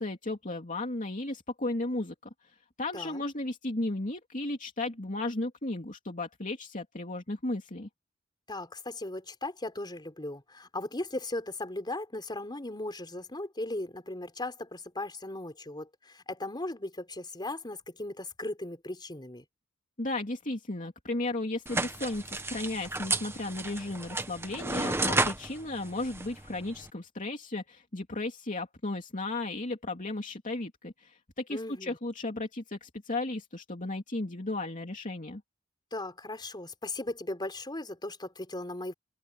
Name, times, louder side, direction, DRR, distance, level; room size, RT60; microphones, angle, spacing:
voice 1, 0.0-2.1 2.4-7.9 20.0-35.4, left 2 dB, 40° left, 2.8 m, -35 dB
voice 2, 8.5-19.4 31.5-32.0 35.9-38.9, left 2 dB, 20° left, 4.1 m, -37 dB
sound 1, 21.7-26.9, right 2 dB, 10° right, 1.3 m, -32 dB
head